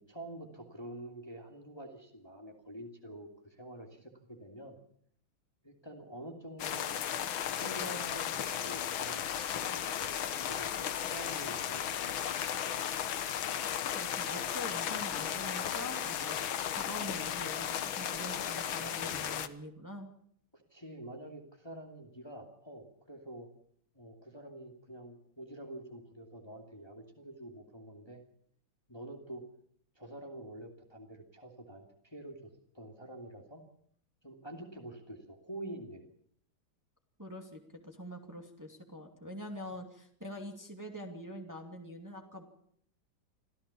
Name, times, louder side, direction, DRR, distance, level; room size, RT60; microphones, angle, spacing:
voice 1, 0.0-4.8 5.6-6.9 7.5-9.2 9.5-10.1 10.4-11.9 12.3-12.6 20.5-23.5 23.9-28.2 28.9-29.4 30.0-33.6 34.2-36.0 39.6-39.7, right 1 dB, 15° left, 2 dB, 2.5 m, -47 dB
sound 1, 6.6-19.5, left 9 dB, 85° left, 1.9 m, -35 dB
voice 2, 13.9-16.4 16.7-20.1 37.2-42.4, equal, 10° right, 3 dB, 2.5 m, -44 dB
25.5 x 15.0 x 7.1 m, 0.66 s
omnidirectional pair, 2.1 m